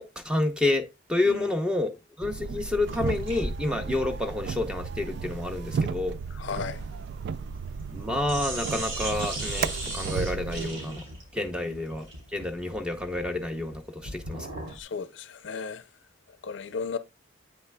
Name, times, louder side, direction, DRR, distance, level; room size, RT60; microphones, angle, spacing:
voice 1, 0.0-1.9 2.2-6.2 7.9-11.0 11.3-12.1 12.3-14.7, left 2 dB, 5° right, 0.6 m, -29 dB
sound 1, 2.2-10.7, right 5 dB, 60° right, 0.3 m, -34 dB
sound 2, 2.9-8.0 8.2-14.8, right 1 dB, 85° right, 3.1 m, -38 dB
voice 2, 6.3-6.8 11.4-11.5 14.7-15.8 16.4-17.0, left 5 dB, 65° left, 0.5 m, -35 dB
8.2 x 5.8 x 2.2 m
head